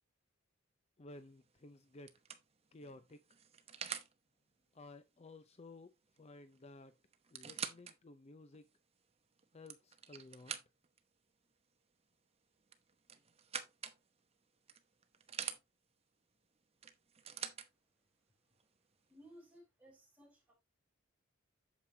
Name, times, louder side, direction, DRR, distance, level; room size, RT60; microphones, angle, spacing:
voice 1, 1.0-2.2 2.7-3.4 4.7-6.9 7.3-8.7 9.5-10.6, left 2 dB, 30° left, 0.5 m, -55 dB
sound 1, 1.2-1.5 2.1-4.1 6.2-6.3 6.5-6.6 7.1-7.9 8.5-8.6 9.4-11.0 12.7-14.0 14.7-15.6 16.8-17.7 18.6-18.7, right 7 dB, 30° right, 0.9 m, -45 dB
voice 2, 19.1-20.5, equal, 5° right, 4.1 m, -60 dB
8.3 x 7.5 x 2.8 m
head